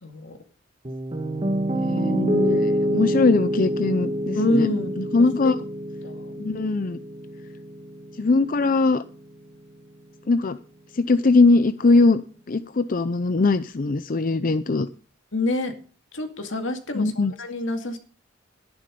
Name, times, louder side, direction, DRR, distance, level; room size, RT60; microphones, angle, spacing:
voice 1, 0.0-0.4 2.8-3.1 4.4-5.5 6.0-6.3 15.3-15.7 16.1-18.0, left 2 dB, 80° left, 6 dB, 2.2 m, -27 dB
Piano, 0.8-8.9, equal, 30° right, 1.8 m, -27 dB
voice 2, 1.7-4.7 5.0-5.6 6.4-7.0 8.2-9.0 10.3-10.6 10.9-12.2 12.5-14.9 16.9-17.3, left 3 dB, 45° left, 12 dB, 0.5 m, -21 dB
12.5 x 11.0 x 5.3 m, 0.39 s
head